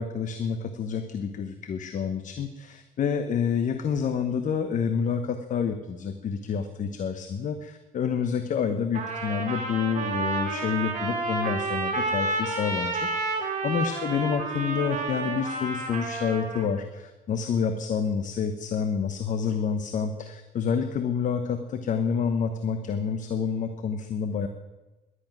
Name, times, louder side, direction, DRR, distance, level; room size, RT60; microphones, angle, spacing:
voice 1, 0.0-24.5, left 6 dB, 50° left, 8 dB, 1.1 m, -28 dB
Trumpet, 8.9-16.7, right 3 dB, 45° right, 4.3 m, -30 dB
11.5 x 11.0 x 9.1 m, 1.1 s
cardioid pair, 110°, 17 cm